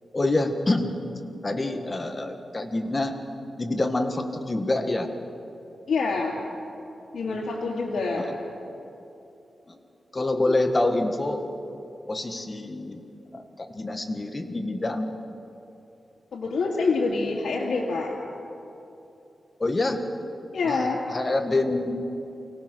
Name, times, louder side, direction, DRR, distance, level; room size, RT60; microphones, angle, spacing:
voice 1, 0.1-0.9 1.4-3.2 3.6-5.1 8.2-8.3 9.7-9.8 10.1-11.5 12.1-13.0 13.3-15.1 19.6-20.0 20.6-22.0, left 2 dB, 25° left, 6 dB, 1.5 m, -26 dB
voice 2, 5.9-6.4 7.1-8.3 16.3-18.1 20.5-21.0, left 4 dB, 90° left, -4 dB, 2.5 m, -26 dB
24.5 x 17.5 x 6.3 m, 2.8 s
wide cardioid pair, 140°, 0 cm